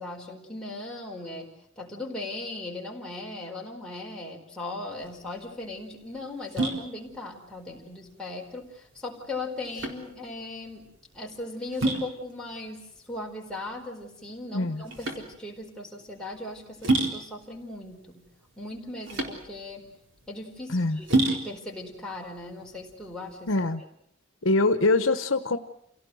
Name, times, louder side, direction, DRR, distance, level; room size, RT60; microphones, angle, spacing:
voice 1, 0.0-10.8 11.1-18.2 18.6-19.9 20.3-23.5, left 2 dB, 5° left, -2 dB, 4.4 m, -38 dB
sound 1, 5.0-23.5, right 2 dB, 65° right, 4.1 m, -32 dB
voice 2, 14.5-14.8 20.7-21.0 23.5-23.8 24.4-25.6, left 2 dB, 70° left, 10 dB, 1.2 m, -23 dB
28.0 x 17.5 x 7.9 m, 0.74 s
head